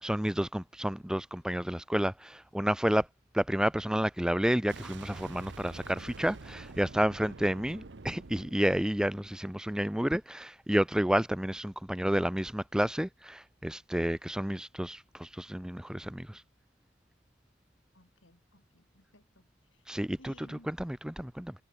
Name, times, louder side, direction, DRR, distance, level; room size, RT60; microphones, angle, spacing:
voice 1, 0.0-3.1 3.3-16.4 19.9-21.5, equal, 5° right, 0.4 m, -30 dB
Boom, 4.7-9.6, right 3 dB, 65° right, 0.9 m, -47 dB
voice 2, 17.9-19.9 20.2-20.7, left 1 dB, 90° left, 6.9 m, -59 dB
head